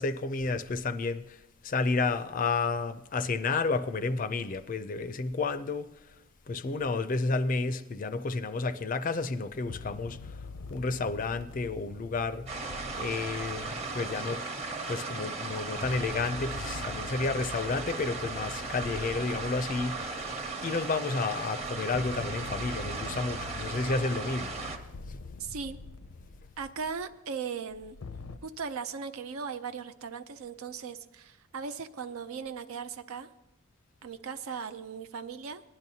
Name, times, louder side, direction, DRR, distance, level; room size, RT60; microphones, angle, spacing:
voice 1, 0.0-1.4 1.6-5.9 6.5-10.2 10.7-12.5 12.9-14.4 14.9-20.2 20.6-24.6 25.1-25.2, left 3 dB, 40° left, 0.4 m, -31 dB
sound 1, 9.5-14.8 15.5-20.9 21.6-27.0 27.7-28.4, left 3 dB, 90° left, 0.6 m, -45 dB
sound 2, 12.5-24.8, right 3 dB, 30° right, 1.0 m, -37 dB
voice 2, 25.4-25.8 26.6-28.0 28.4-33.3 34.0-35.6, right 5 dB, 80° right, 0.5 m, -38 dB
19.0 x 10.5 x 2.8 m
head